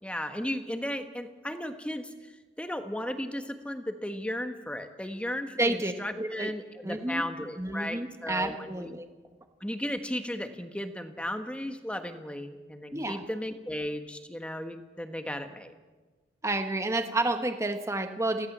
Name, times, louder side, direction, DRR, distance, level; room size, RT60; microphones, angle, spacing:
voice 1, 0.0-2.3 2.6-8.9 9.6-15.7, left 1 dB, 5° left, 7 dB, 1.4 m, -35 dB
voice 2, 5.6-6.5 6.8-7.2 7.6-9.1 12.9-13.2 16.4-18.5, right 2 dB, 15° right, 7 dB, 1.2 m, -30 dB
24.5 x 17.0 x 7.4 m, 1.3 s
head